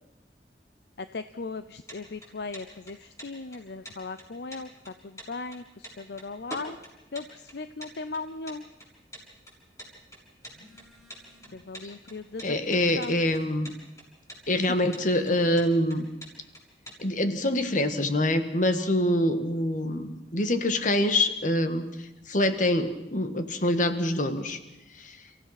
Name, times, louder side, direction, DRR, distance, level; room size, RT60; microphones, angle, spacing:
voice 1, 1.0-6.8 7.1-8.6 11.5-12.6 13.0-13.2 14.7-14.8, left 3 dB, 65° left, 12 dB, 0.6 m, -38 dB
sound 1, 1.6-17.0, equal, 20° left, 6.8 m, -46 dB
Telephone, 10.4-11.7 12.0-13.7 14.3-15.8, equal, ahead, 6.4 m, -53 dB
voice 2, 12.4-13.7 14.5-16.1 17.0-21.9 22.3-24.6, left 1 dB, 45° left, 9 dB, 1.6 m, -25 dB
30.0 x 16.0 x 5.9 m, 0.93 s
head